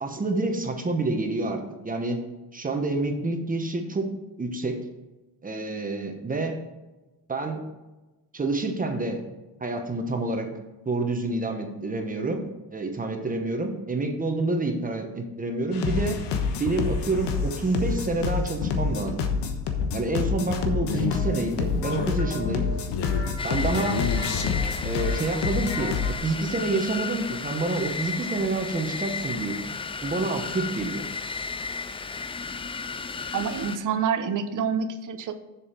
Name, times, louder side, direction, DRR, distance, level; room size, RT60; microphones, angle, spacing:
voice 1, 0.0-2.2 2.5-4.1 4.4-4.8 5.4-6.6 7.3-7.6 8.3-9.2 9.6-10.5 10.8-12.4 12.7-16.2 16.6-19.3 19.9-22.7 23.4-24.0 24.8-31.1, right 2 dB, 20° right, 4 dB, 1.1 m, -28 dB
sound 1, 15.7-26.1, left 5 dB, 85° left, 1.3 m, -27 dB
sound 2, 23.4-33.8, left 4 dB, 15° left, 0.3 m, -34 dB
voice 2, 33.3-35.3, right 6 dB, 50° right, 10 dB, 0.9 m, -27 dB
7.3 x 7.2 x 5.0 m, 1.1 s
cardioid pair, 130°, 40 cm